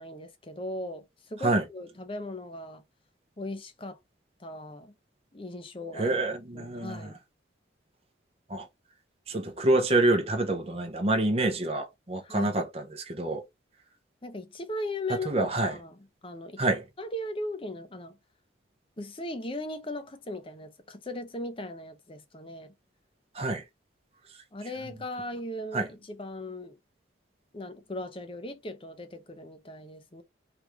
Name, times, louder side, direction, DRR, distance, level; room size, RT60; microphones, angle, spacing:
voice 1, 0.0-2.8 3.4-4.0 4.4-4.9 5.3-6.2 6.5-7.2 12.2-12.6 14.2-16.6 17.0-18.2 19.0-22.7 24.5-26.8 27.5-30.2, left 1 dB, 30° left, 0.7 m, -38 dB
voice 2, 5.9-7.1 8.5-8.6 9.3-13.4 15.3-15.8 16.6-16.8 23.3-23.6 25.7-25.9, right 2 dB, 30° right, 0.7 m, -27 dB
3.4 x 3.2 x 4.7 m
head